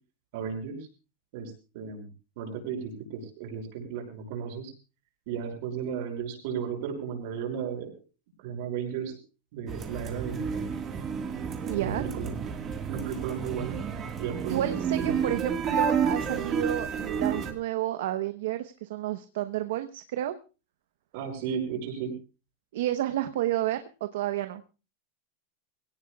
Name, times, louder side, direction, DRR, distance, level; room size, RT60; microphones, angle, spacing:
voice 1, 0.3-0.8 1.3-2.1 2.4-4.7 5.3-7.9 8.4-9.2 9.5-10.7 11.8-12.3 12.9-13.8 14.2-15.4 21.1-22.1, right 7 dB, 50° right, 2 dB, 6.1 m, -34 dB
sound 1, 9.7-17.5, right 6 dB, 20° right, 1.7 m, -30 dB
voice 2, 11.6-12.0 14.5-20.3 22.7-24.6, right 13 dB, 70° right, 9 dB, 1.0 m, -31 dB
22.5 x 17.5 x 2.4 m, 0.32 s
supercardioid pair, 175°, 0 cm